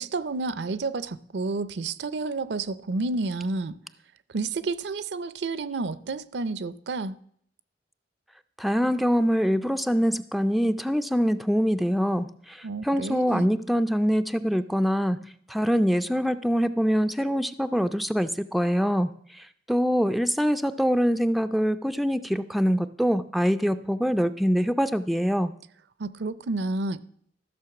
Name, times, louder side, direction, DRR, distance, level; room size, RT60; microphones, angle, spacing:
voice 1, 0.0-3.8 4.3-7.2 12.6-13.5 26.0-27.0, right 3 dB, 70° right, 0.5 m, -30 dB
voice 2, 8.6-25.5, equal, ahead, 0.3 m, -24 dB
13.5 x 6.5 x 5.8 m
head